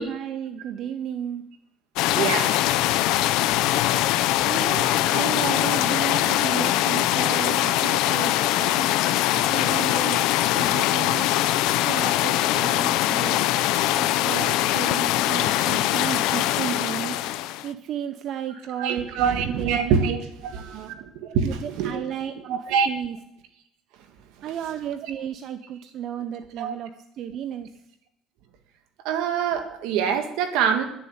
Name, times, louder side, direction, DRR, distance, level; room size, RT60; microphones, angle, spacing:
voice 1, 0.0-1.4 4.4-8.9 9.5-10.3 10.5-11.3 11.9-13.5 14.0-17.2 17.6-19.8 20.4-20.9 21.4-23.2 24.4-27.7, right 9 dB, 60° right, 9 dB, 0.7 m, -33 dB
sound 1, 2.0-17.7, left 14 dB, 80° left, 0.6 m, -22 dB
voice 2, 2.1-2.6 7.7-8.0 18.8-22.0 22.4-22.9 26.6-26.7 29.0-30.8, right 7 dB, 85° right, 7 dB, 1.6 m, -25 dB
11.5 x 7.1 x 8.6 m, 0.79 s
cardioid pair, 110°, 0 cm